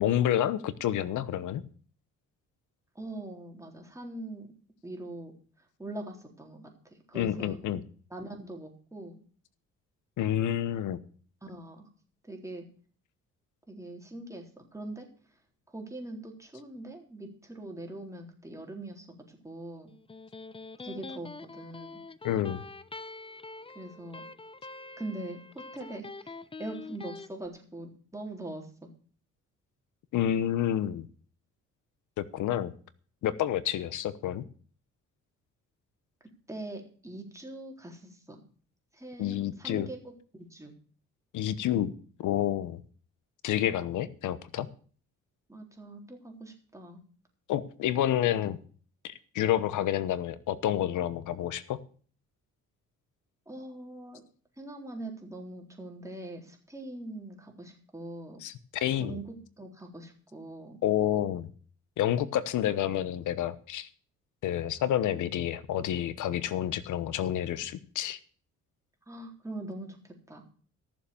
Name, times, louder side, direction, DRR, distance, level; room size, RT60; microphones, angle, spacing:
voice 1, 0.0-1.6 7.1-7.8 10.2-11.0 22.2-22.6 30.1-31.1 32.2-32.7 33.2-34.4 39.2-39.9 41.3-41.9 42.2-42.8 43.4-44.7 47.5-48.6 49.0-51.8 58.4-59.1 60.8-61.5 62.0-63.9 64.4-68.2, left 11 dB, 80° left, 16 dB, 1.1 m, -29 dB
voice 2, 3.0-4.5 4.8-5.3 5.6-7.6 8.1-9.2 11.4-11.9 12.2-12.6 13.7-15.1 15.7-19.9 20.8-22.0 23.7-24.3 25.0-28.9 36.5-38.4 38.9-40.7 45.5-47.0 53.5-54.2 54.6-58.4 59.0-60.8 69.1-70.5, right 2 dB, 10° right, 2 dB, 3.8 m, -42 dB
Electric guitar, 19.9-27.3, left 3 dB, 20° left, 0.7 m, -45 dB
14.0 x 7.2 x 7.1 m, 0.44 s
cardioid pair, 90°, 30 cm